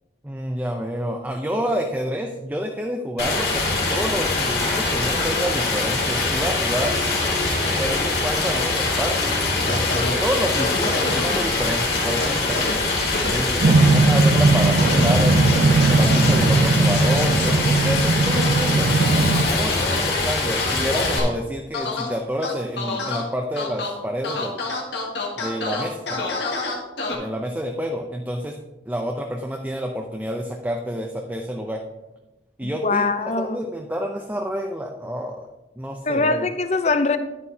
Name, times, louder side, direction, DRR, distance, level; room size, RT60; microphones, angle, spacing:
voice 1, 0.2-7.0 7.8-12.8 13.3-18.9 19.4-24.7 25.4-26.2 27.1-28.6 28.9-31.8 32.6-33.1 33.4-35.5 35.8-36.5, equal, 10° right, 0.5 m, -28 dB
Stream, 3.2-21.2, left 3 dB, 60° left, 2.3 m, -23 dB
sound 1, 9.7-10.1 10.6-11.4 12.2-12.7 13.1-13.3 14.8-15.1 15.5-16.4 16.9-17.5 18.3-20.0 20.6-21.3 21.7-22.1 22.4-23.2 23.6-23.9 24.2-27.1, left 3 dB, 75° left, 1.7 m, -28 dB
sound 2, 13.6-19.4, right 3 dB, 60° right, 0.6 m, -18 dB
voice 2, 32.6-33.6 36.1-37.2, left 3 dB, 35° left, 0.5 m, -22 dB
10.5 x 9.6 x 2.8 m
head